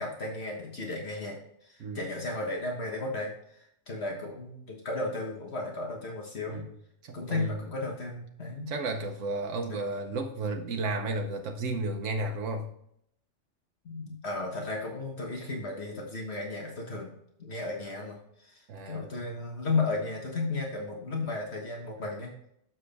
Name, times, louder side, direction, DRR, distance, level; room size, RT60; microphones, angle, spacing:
voice 1, 0.0-6.6 7.1-8.7 9.7-9.8 13.8-17.1 17.4-22.3, left 3 dB, 60° left, 0 dB, 1.6 m, -34 dB
voice 2, 7.0-7.6 8.7-12.7 18.7-19.1, right 2 dB, 80° right, 3 dB, 1.1 m, -33 dB
7.3 x 6.3 x 3.4 m, 0.71 s
omnidirectional pair, 1.3 m